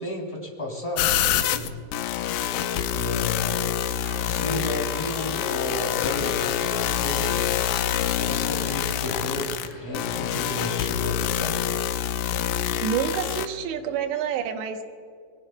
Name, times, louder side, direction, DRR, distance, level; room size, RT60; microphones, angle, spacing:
voice 1, 0.0-1.7 2.9-3.7 4.2-7.6 8.1-11.5, left 1 dB, 10° left, -1 dB, 2.5 m, -32 dB
sound 1, 1.0-13.5, left 10 dB, 80° left, 2.7 m, -26 dB
sound 2, 4.0-12.1, left 1 dB, 25° left, 3.8 m, -42 dB
voice 2, 12.8-14.8, right 8 dB, 85° right, 6 dB, 3.2 m, -28 dB
27.5 x 21.5 x 2.2 m, 2.1 s
omnidirectional pair, 4.9 m